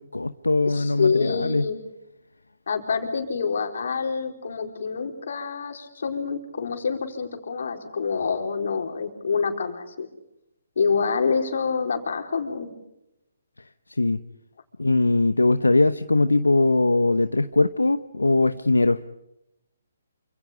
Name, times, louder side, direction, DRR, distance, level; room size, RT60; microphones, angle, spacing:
voice 1, 0.0-1.7 13.9-14.2 14.8-19.0, left 2 dB, 85° left, 12 dB, 0.9 m, -21 dB
voice 2, 0.7-1.8 2.7-10.1 10.8-12.7, left 5 dB, 60° left, 4 dB, 4.6 m, -27 dB
28.0 x 26.5 x 5.2 m, 0.87 s
figure-of-eight pair, 135°, 0 cm